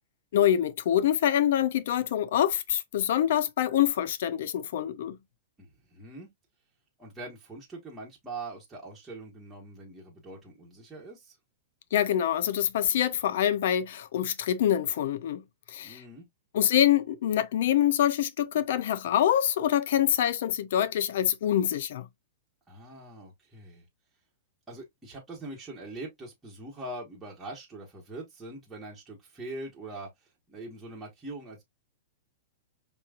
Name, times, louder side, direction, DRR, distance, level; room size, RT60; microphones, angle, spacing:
voice 1, 0.3-5.2 11.9-15.4 15.7-16.0 16.5-22.1, left 10 dB, 60° left, 0.4 m, -25 dB
voice 2, 5.6-6.3 7.0-11.4 15.8-16.3 22.7-23.8 24.7-30.1 30.5-31.6, right 2 dB, 10° right, 1.3 m, -42 dB
5.2 x 3.0 x 2.4 m
supercardioid pair, 160°, 0 cm